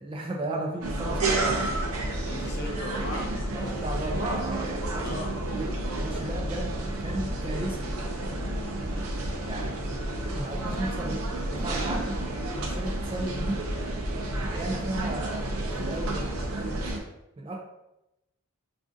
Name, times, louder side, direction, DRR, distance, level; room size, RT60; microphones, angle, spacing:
voice 1, 0.0-1.7 3.5-5.3 5.9-8.0 9.4-13.7 14.4-16.9 17.4-17.6, right 1 dB, 25° right, 0 dB, 0.3 m, -35 dB
sound 1, 0.8-17.0, right 1 dB, 85° right, 0.6 m, -30 dB
voice 2, 2.2-3.4 5.0-5.7, left 1 dB, 50° left, 1 dB, 0.5 m, -37 dB
2.5 x 2.4 x 3.6 m, 0.89 s
head